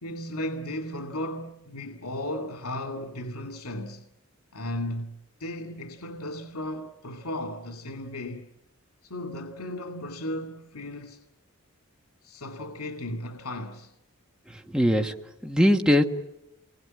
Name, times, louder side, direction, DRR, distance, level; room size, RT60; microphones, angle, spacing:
voice 1, 0.0-4.0 4.5-8.5 9.0-11.2 12.2-13.9, left 1 dB, 85° left, 2.2 m, -35 dB
voice 2, 14.5-15.1 15.4-16.0, equal, 5° right, 1.6 m, -21 dB
29.5 x 21.0 x 9.6 m
head